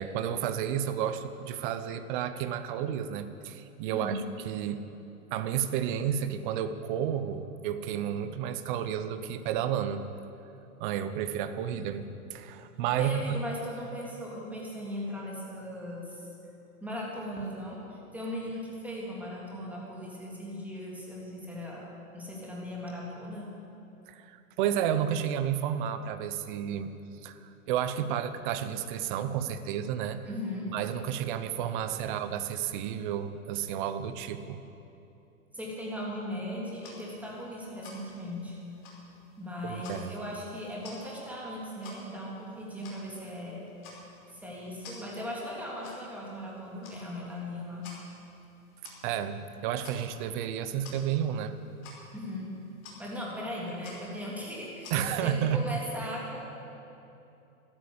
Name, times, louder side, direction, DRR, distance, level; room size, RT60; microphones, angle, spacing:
voice 1, 0.0-4.9 5.3-10.0 10.8-12.0 12.3-13.4 24.1-26.9 27.2-30.2 30.7-34.6 39.6-40.1 49.0-51.6 54.9-55.8, right 9 dB, 35° right, 11 dB, 0.9 m, -31 dB
voice 2, 13.0-16.3 16.8-23.5 30.3-30.7 35.5-38.6 39.4-43.7 44.3-47.8 52.1-52.5 53.0-54.9 55.2-56.5, left 1 dB, 5° right, -4 dB, 3.3 m, -38 dB
sound 1, 36.7-55.5, left 3 dB, 40° left, 5.0 m, -53 dB
13.0 x 12.5 x 8.7 m, 2.9 s
hypercardioid pair, 135°, 43 cm